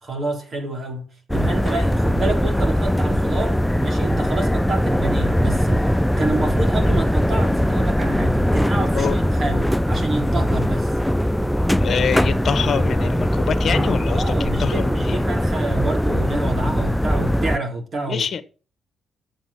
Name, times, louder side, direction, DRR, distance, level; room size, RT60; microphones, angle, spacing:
voice 1, 0.0-10.9 14.1-18.3, right 2 dB, 45° right, 4.0 m, -28 dB
sound 1, 1.3-17.6, equal, 5° left, 0.4 m, -20 dB
voice 2, 11.8-15.2 18.1-18.4, left 7 dB, 50° left, 1.3 m, -25 dB
8.9 x 7.4 x 7.2 m
cardioid pair, 90°, 0 cm